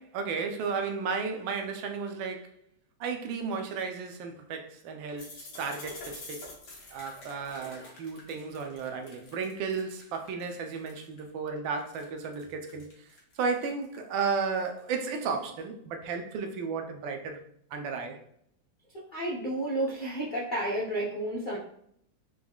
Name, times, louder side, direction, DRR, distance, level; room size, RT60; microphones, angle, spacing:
voice 1, 0.0-2.5 3.0-6.4 6.9-13.1 13.4-17.4 17.7-18.2, right 5 dB, 85° right, 1.4 m, -34 dB
sound 1, 5.2-11.2 11.6-15.4, left 2 dB, 65° left, 1.6 m, -48 dB
voice 2, 19.1-21.6, right 1 dB, 90° left, 0.4 m, -31 dB
4.7 x 3.5 x 2.3 m
omnidirectional pair, 2.1 m